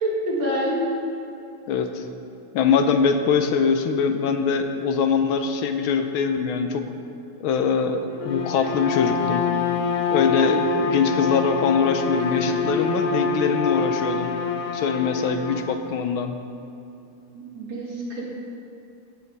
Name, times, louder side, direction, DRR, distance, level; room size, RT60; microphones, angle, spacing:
voice 1, 0.0-0.8 17.3-18.2, equal, 65° right, -5 dB, 3.0 m, -26 dB
voice 2, 1.7-2.1 2.5-6.9 7.4-9.4 10.1-14.3 14.7-16.3, left 5 dB, 80° left, 7 dB, 1.5 m, -23 dB
Bowed string instrument, 8.1-15.7, left 4 dB, 60° left, 0.9 m, -25 dB
15.0 x 8.2 x 4.1 m, 2.7 s
omnidirectional pair, 2.3 m